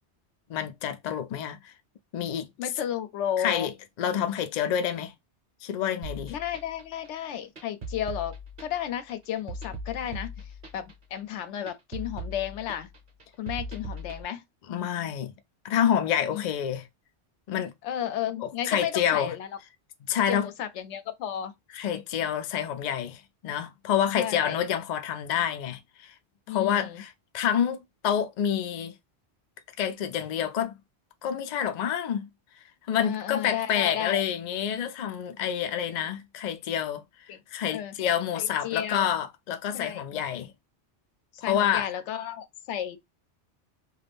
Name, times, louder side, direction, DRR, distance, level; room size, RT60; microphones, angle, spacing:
voice 1, 0.5-1.7 2.1-2.5 3.4-3.7 4.0-5.1 5.6-6.3 14.7-15.3 15.6-16.9 17.5-17.7 18.4-19.3 20.0-20.5 21.7-26.1 26.5-28.9 29.8-30.8 31.2-32.3 32.9-37.0 37.5-40.5 41.4-41.9, left 9 dB, 60° left, 0.4 m, -28 dB
voice 2, 2.6-3.7 6.3-10.4 10.7-12.9 13.4-14.4 16.3-16.4 17.8-19.5 20.3-21.5 24.2-24.6 26.5-27.0 33.0-34.2 37.3-37.4 37.7-37.9 38.3-39.1 39.7-40.0 41.4-43.0, left 10 dB, 80° left, 0.9 m, -33 dB
sound 1, 6.0-14.2, equal, 50° right, 0.9 m, -40 dB
2.5 x 2.4 x 3.4 m
omnidirectional pair, 1.2 m